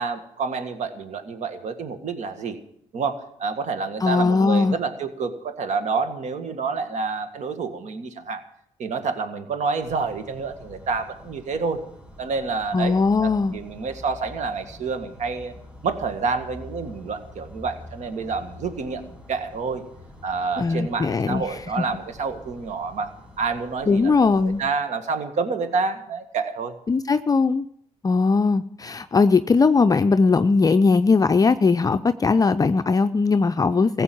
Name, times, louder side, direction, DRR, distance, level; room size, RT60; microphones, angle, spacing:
voice 1, 0.0-2.6 2.9-8.4 8.8-11.8 12.2-15.5 15.8-19.8 20.2-23.1 23.4-24.1 24.4-26.8, right 4 dB, 60° right, 8 dB, 1.7 m, -28 dB
voice 2, 4.0-4.8 12.7-13.5 20.6-21.6 23.9-24.6 26.9-27.7 28.0-34.0, left 4 dB, 25° left, 10 dB, 0.5 m, -19 dB
sound 1, 9.8-24.7, left 1 dB, 10° right, 3.9 m, -45 dB
15.5 x 7.9 x 9.2 m, 0.71 s
supercardioid pair, 70°, 14 cm